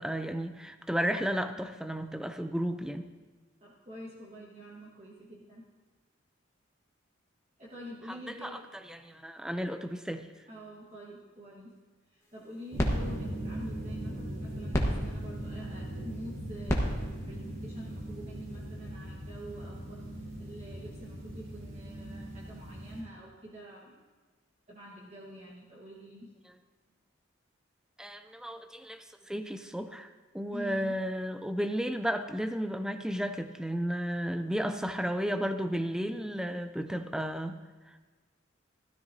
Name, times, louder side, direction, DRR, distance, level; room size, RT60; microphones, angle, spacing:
voice 1, 0.0-3.1 8.1-8.2 8.4-8.6 8.9-10.3 28.0-30.1 30.3-37.6, equal, 5° right, 8 dB, 0.4 m, -33 dB
voice 2, 3.6-5.6 7.6-8.6 10.5-11.7 12.0-24.0 24.7-26.3 30.5-31.0, right 1 dB, 35° right, -5 dB, 1.4 m, -46 dB
sound 1, 12.2-18.6, equal, 15° left, 1.3 m, -35 dB
sound 2, 12.7-23.0, right 1 dB, 90° right, 4.3 m, -40 dB
16.0 x 13.0 x 2.7 m, 1.3 s
head